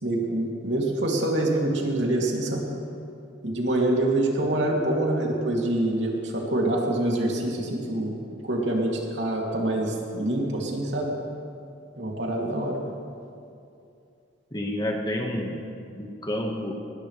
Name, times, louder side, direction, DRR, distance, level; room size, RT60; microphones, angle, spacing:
voice 1, 0.0-2.6 3.4-8.2 8.4-11.1 12.0-12.8, right 1 dB, 70° right, -2 dB, 2.8 m, -25 dB
voice 2, 14.5-15.6 15.9-16.7, left 1 dB, 20° left, 1 dB, 1.6 m, -29 dB
20.5 x 19.0 x 3.4 m, 2.5 s
head